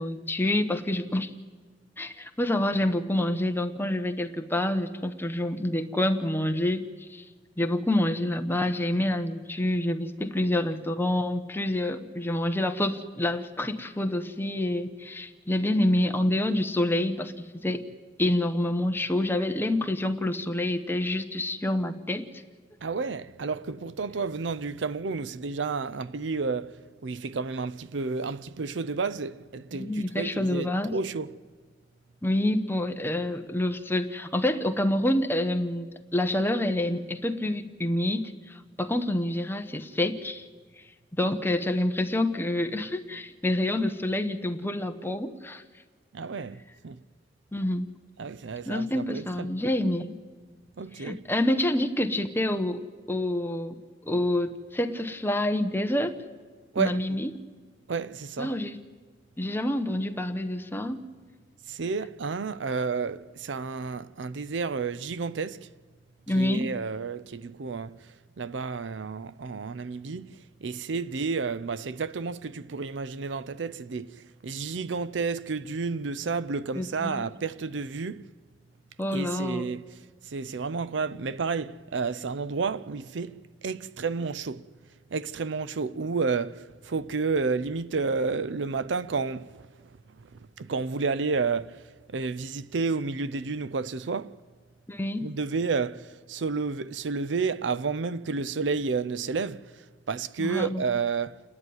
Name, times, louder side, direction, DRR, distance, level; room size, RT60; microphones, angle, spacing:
voice 1, 0.0-1.3 2.0-7.2 7.6-17.8 18.2-22.4 29.7-30.9 32.2-35.9 36.1-40.5 41.2-45.6 47.5-47.9 48.6-50.2 51.0-52.8 53.1-53.8 54.0-56.1 56.8-57.3 58.4-58.8 59.4-61.0 66.3-66.7 76.7-77.3 79.0-79.7 94.9-95.3 100.4-100.8, left 1 dB, 10° left, 1.0 m, -27 dB
voice 2, 22.8-31.3 46.1-47.0 48.2-49.5 50.8-51.2 56.7-57.2 57.9-58.5 61.7-65.7 66.3-78.2 79.1-79.8 80.2-84.7 85.1-89.7 90.2-94.4 95.2-101.4, right 4 dB, 80° right, 0.6 m, -31 dB
28.5 x 10.5 x 9.4 m
head